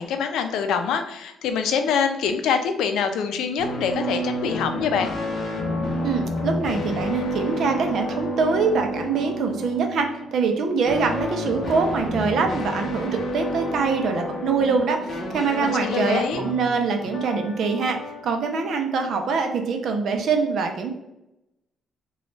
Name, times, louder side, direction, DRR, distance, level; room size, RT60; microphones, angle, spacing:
voice 1, 0.0-5.1 15.6-16.4, left 6 dB, 85° left, 7 dB, 0.4 m, -25 dB
sound 1, 3.6-18.3, left 1 dB, 40° left, 0.8 m, -30 dB
voice 2, 6.0-18.0 18.2-20.9, right 4 dB, 55° right, 4 dB, 0.5 m, -24 dB
4.0 x 2.3 x 3.1 m, 0.86 s
cardioid pair, 160°, 0 cm